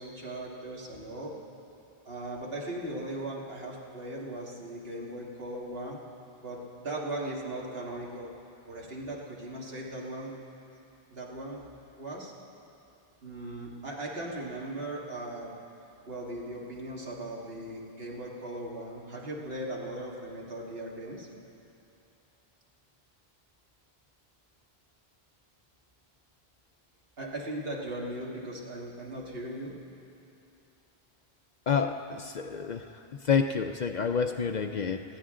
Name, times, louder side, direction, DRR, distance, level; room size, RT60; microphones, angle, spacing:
voice 1, 0.0-1.3 2.0-6.0 6.4-8.3 8.7-10.3 11.1-11.6 11.9-12.3 13.2-15.5 16.1-21.3 27.2-29.7, right 1 dB, 70° right, -3 dB, 2.2 m, -38 dB
voice 2, 31.7-32.9 33.2-35.0, left 6 dB, 55° left, 6 dB, 0.6 m, -28 dB
19.5 x 15.0 x 3.8 m, 2.8 s
omnidirectional pair, 1.0 m